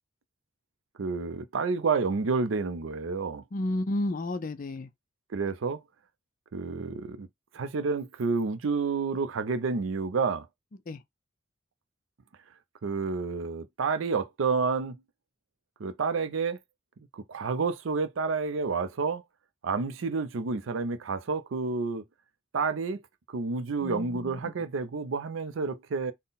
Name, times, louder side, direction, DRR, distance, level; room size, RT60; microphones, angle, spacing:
voice 1, 1.0-3.4 5.3-5.8 6.5-7.3 7.5-10.5 12.8-15.0 15.8-16.6 17.1-19.2 19.6-22.0 22.5-23.0 23.3-26.1, right 4 dB, 80° right, 0.5 m, -29 dB
voice 2, 3.5-4.9 10.9-11.0 23.8-24.4, left 1 dB, 40° left, 0.4 m, -31 dB
3.8 x 2.1 x 4.0 m
head